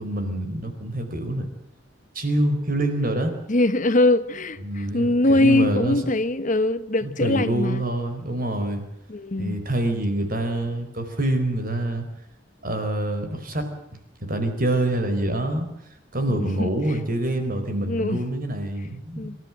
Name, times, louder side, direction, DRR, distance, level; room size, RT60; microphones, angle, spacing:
voice 1, 0.0-1.5 2.1-3.3 4.6-6.0 7.0-8.8 9.4-12.1 12.6-15.7 16.1-19.3, right 1 dB, 45° right, 4.4 m, -26 dB
voice 2, 3.5-7.8 9.1-9.6 16.3-17.0 17.9-18.2 19.2-19.4, left 2 dB, 40° left, 1.1 m, -22 dB
27.0 x 13.5 x 8.9 m
head